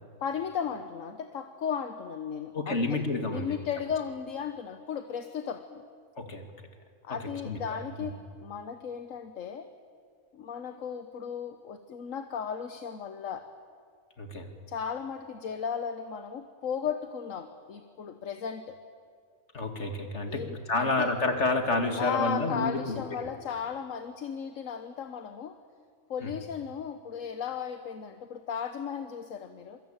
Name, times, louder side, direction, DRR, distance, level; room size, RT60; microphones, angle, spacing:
voice 1, 0.2-3.0 3.3-5.8 7.0-9.7 10.3-13.5 14.7-18.8 20.3-21.1 22.0-25.6 26.1-29.8, left 7 dB, 75° left, 8 dB, 1.4 m, -35 dB
voice 2, 2.5-3.6 6.2-6.5 7.4-7.6 8.0-8.1 14.2-14.5 19.5-23.3 26.2-26.3, left 2 dB, 60° left, 5 dB, 2.7 m, -29 dB
26.5 x 24.0 x 8.9 m, 2.1 s
omnidirectional pair, 1.4 m